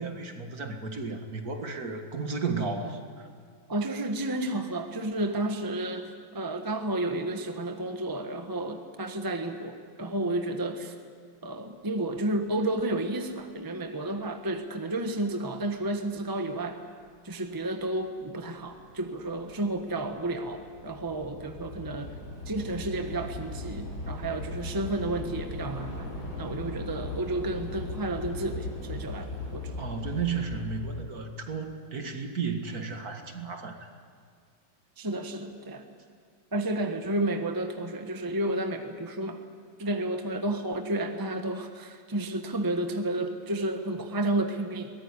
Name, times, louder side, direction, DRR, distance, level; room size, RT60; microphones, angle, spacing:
voice 1, 0.0-3.3 29.8-33.9, right 4 dB, 50° right, 5 dB, 2.2 m, -33 dB
voice 2, 3.7-10.9 11.4-16.8 17.2-22.2 22.5-26.1 26.4-29.8 35.0-35.8 36.5-39.4 39.8-44.9, right 1 dB, 15° right, 6 dB, 1.1 m, -31 dB
Train / Subway metro underground, 17.0-17.1 17.9-18.2 18.4-31.0, left 2 dB, 50° left, 6.3 m, -38 dB
22.5 x 19.0 x 9.8 m, 2.1 s
omnidirectional pair, 2.1 m